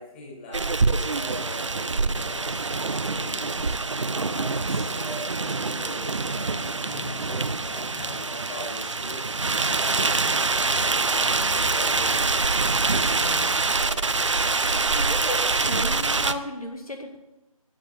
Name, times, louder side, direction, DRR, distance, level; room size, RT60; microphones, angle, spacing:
voice 1, 0.0-3.7 4.2-5.3 5.6-14.0, left 1 dB, 20° left, -4 dB, 5.3 m, -41 dB
sound 1, 0.5-16.3, right 3 dB, 55° right, 0.8 m, -25 dB
voice 2, 14.9-17.2, left 1 dB, 75° left, 3 dB, 2.1 m, -34 dB
17.0 x 9.4 x 6.8 m, 0.97 s
figure-of-eight pair, 160°, 19 cm